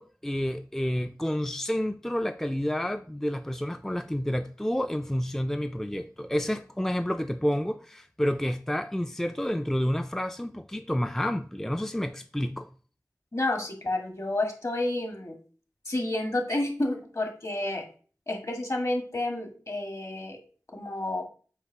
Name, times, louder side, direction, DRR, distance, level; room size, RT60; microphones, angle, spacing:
voice 1, 0.0-12.7, equal, 5° left, 0.4 m, -29 dB
voice 2, 13.3-15.3 15.9-17.8 18.3-20.4 20.7-21.3, left 2 dB, 55° left, 1.8 m, -30 dB
8.1 x 2.7 x 5.7 m
wide cardioid pair, 45°, 6 cm